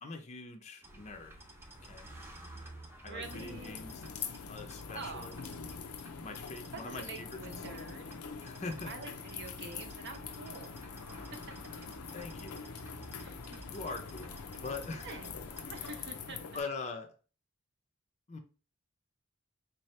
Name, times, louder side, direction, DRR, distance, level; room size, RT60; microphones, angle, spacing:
voice 1, 0.0-1.4 1.8-2.1 3.0-4.0 4.5-5.4 6.2-7.4 8.4-8.9 12.1-13.1 13.7-14.4 14.6-15.2 16.5-17.1 18.3-18.4, left 3 dB, 30° left, 0.5 m, -42 dB
sound 1, 0.8-15.9, right 1 dB, 10° right, 0.7 m, -52 dB
voice 2, 3.0-3.8 4.9-5.5 6.7-8.1 8.8-10.8 11.1-11.2 11.8-11.9 13.2-13.7 15.0-16.6, right 3 dB, 55° right, 0.7 m, -46 dB
sound 2, 3.2-16.6, left 6 dB, 80° left, 0.5 m, -44 dB
3.9 x 2.8 x 3.2 m
head